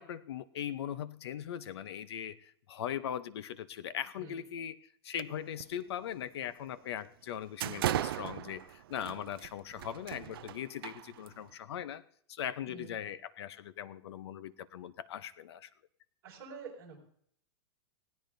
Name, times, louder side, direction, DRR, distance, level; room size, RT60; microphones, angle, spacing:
voice 1, 0.0-12.0 12.3-15.7, left 10 dB, 70° left, 14 dB, 0.7 m, -40 dB
sound 1, 5.2-5.6 6.0-6.2 6.8-6.9 7.3-11.5, right 13 dB, 60° right, 0.4 m, -38 dB
voice 2, 12.6-12.9 16.2-17.0, right 5 dB, 20° right, -4 dB, 5.3 m, -47 dB
19.5 x 17.0 x 2.7 m, 0.64 s
supercardioid pair, 180°, 14 cm